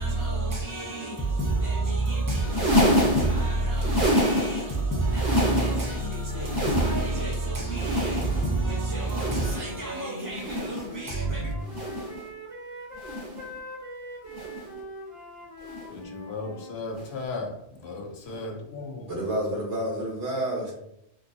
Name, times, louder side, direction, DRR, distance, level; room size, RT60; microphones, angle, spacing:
voice 1, 0.0-11.5, right 2 dB, 30° left, 0.4 m, -28 dB
sound 1, 2.4-4.8 5.0-6.0 6.3-7.3 7.7-8.6 9.0-9.8 10.3-11.0 11.7-12.2 13.0-13.5 14.3-14.7 15.6-16.0 16.9-17.1 18.3-18.4, equal, 50° right, 1.0 m, -27 dB
Wind instrument woodwind instrument, 10.1-16.8, equal, 35° right, 0.6 m, -42 dB
voice 2, 15.9-19.1, left 3 dB, 70° left, 0.9 m, -36 dB
voice 3, 19.1-20.7, right 1 dB, 80° right, 1.4 m, -29 dB
3.6 x 2.3 x 2.5 m
omnidirectional pair, 1.1 m